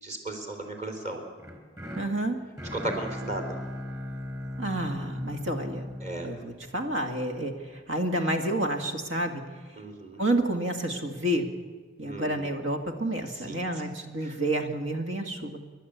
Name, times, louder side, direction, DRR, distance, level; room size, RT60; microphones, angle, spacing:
voice 1, 0.0-1.2 2.7-3.6 6.0-6.3 9.8-10.2 12.0-12.5 13.5-13.6 14.2-14.4, right 1 dB, 35° right, 3 dB, 3.6 m, -35 dB
sound 1, 1.4-7.5, left 1 dB, 20° right, 4.3 m, -38 dB
voice 2, 2.0-2.4 4.6-5.9 6.2-9.4 10.2-11.5 12.0-15.6, right 1 dB, 70° right, 5 dB, 2.1 m, -29 dB
29.5 x 11.5 x 8.2 m, 1.5 s
head